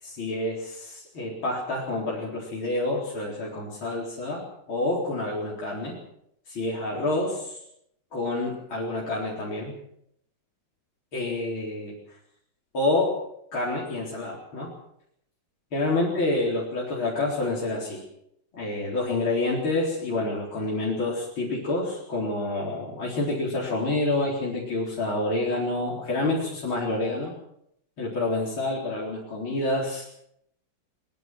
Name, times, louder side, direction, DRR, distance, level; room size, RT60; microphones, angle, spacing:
voice 1, 0.0-4.4 4.7-6.0 6.5-7.6 8.1-9.7 11.1-11.9 12.7-13.2 13.5-14.7 15.7-18.0 18.5-27.3 28.0-30.0, left 2 dB, 80° left, -5 dB, 5.0 m, -28 dB
22.0 x 21.0 x 6.1 m, 0.74 s
omnidirectional pair, 2.2 m